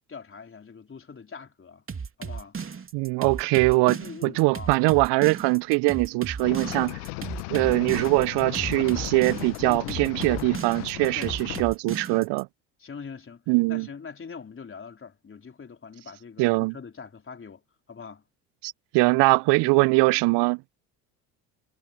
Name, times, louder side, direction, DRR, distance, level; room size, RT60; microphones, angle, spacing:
voice 1, 0.0-1.8 2.2-2.6 3.8-4.7 9.7-10.1 11.1-11.3 12.1-12.3 12.8-13.4 13.7-17.6 17.9-18.2 19.6-19.8, left 5 dB, 25° left, 3.9 m, -42 dB
sound 1, 1.9-12.4, right 5 dB, 25° right, 3.1 m, -35 dB
voice 2, 2.9-7.0 7.5-12.4 13.5-13.9 16.4-16.7 18.6-20.8, right 26 dB, 55° right, 0.9 m, -22 dB
sound 2, 6.4-11.6, left 28 dB, 70° left, 1.6 m, -35 dB
hypercardioid pair, 65°, 48 cm